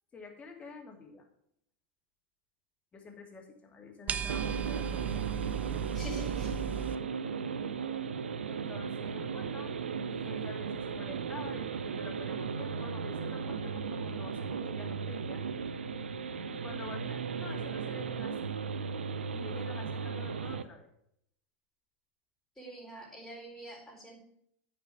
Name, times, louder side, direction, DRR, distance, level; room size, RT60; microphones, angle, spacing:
voice 1, 0.1-1.3 2.9-5.1 8.5-9.7 10.1-15.4 16.5-18.5 19.3-20.9, left 4 dB, 20° left, 1 dB, 2.5 m, -48 dB
sound 1, 4.1-7.0, right 8 dB, 25° right, 0.5 m, -36 dB
sound 2, 4.3-20.6, right 6 dB, 85° right, 0.6 m, -36 dB
voice 2, 5.9-6.6 22.6-24.2, equal, 5° left, -4 dB, 4.1 m, -45 dB
9.3 x 5.4 x 6.8 m, 0.71 s
hypercardioid pair, 95°, 6 cm